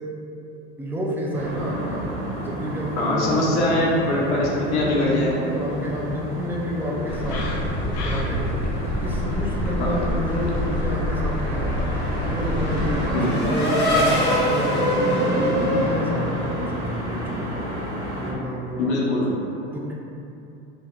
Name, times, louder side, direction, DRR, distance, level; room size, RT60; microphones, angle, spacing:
voice 1, 0.8-2.1 2.4-3.7 4.4-7.5 8.0-8.6 8.9-11.9 12.3-17.7 18.2-18.9 19.3-19.9, equal, 5° right, -3 dB, 0.3 m, -30 dB
sound 1, 1.3-18.3, right 1 dB, 60° right, 1.0 m, -30 dB
voice 2, 3.0-5.4 9.8-9.9 13.1-13.4 18.8-19.3, left 1 dB, 80° left, -5 dB, 0.8 m, -22 dB
sound 2, 7.1-13.1, left 1 dB, 50° left, 0.6 m, -27 dB
Race car auto racing / Accelerating revving vroom, 10.9-16.9, equal, 30° left, 0.9 m, -25 dB
3.6 x 2.7 x 2.3 m, 2.7 s
supercardioid pair, 100°, 34 cm